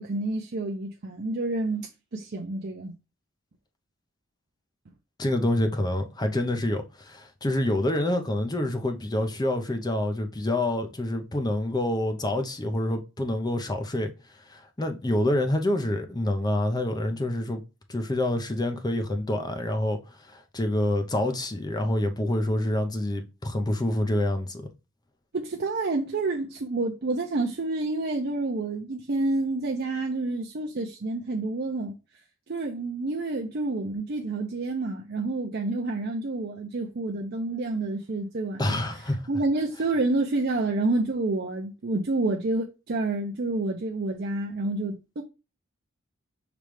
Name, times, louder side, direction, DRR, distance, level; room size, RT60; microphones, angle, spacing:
voice 1, 0.0-2.9 25.3-32.0 32.5-38.8 39.3-45.2, right 2 dB, 50° right, 0.6 m, -29 dB
voice 2, 5.2-14.1 14.5-17.6 17.9-20.0 20.3-24.7 38.6-39.2, left 1 dB, 20° left, 0.7 m, -27 dB
5.1 x 3.2 x 3.2 m
head